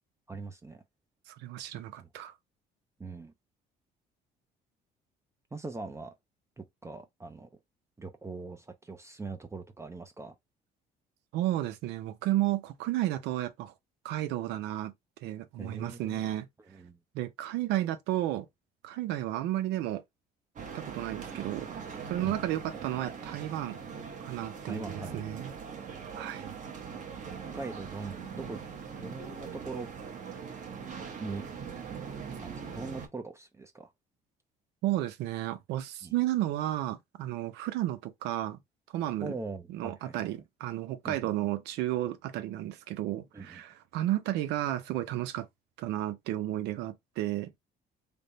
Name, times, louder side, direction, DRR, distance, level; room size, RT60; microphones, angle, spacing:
voice 1, 0.3-0.8 2.0-2.1 3.0-3.3 5.5-6.1 6.6-7.5 8.0-10.3 15.6-16.2 16.7-17.0 22.2-22.4 24.7-25.6 27.5-28.6 28.9-29.9 31.2-31.5 32.4-33.9 36.0-36.1 39.2-40.3 41.0-41.3 43.3-43.6, right 3 dB, 15° right, 0.5 m, -41 dB
voice 2, 1.3-2.3 11.3-13.7 14.0-14.9 15.2-16.5 17.1-18.5 18.8-20.0 20.7-21.7 22.1-23.8 24.2-25.5 26.1-26.5 34.8-38.6 38.9-39.4 39.7-45.5 45.8-47.5, right 14 dB, 90° right, 0.6 m, -32 dB
sound 1, 20.6-33.1, right 6 dB, 45° right, 1.1 m, -41 dB
3.4 x 2.2 x 4.0 m
cardioid pair, 110°, 17 cm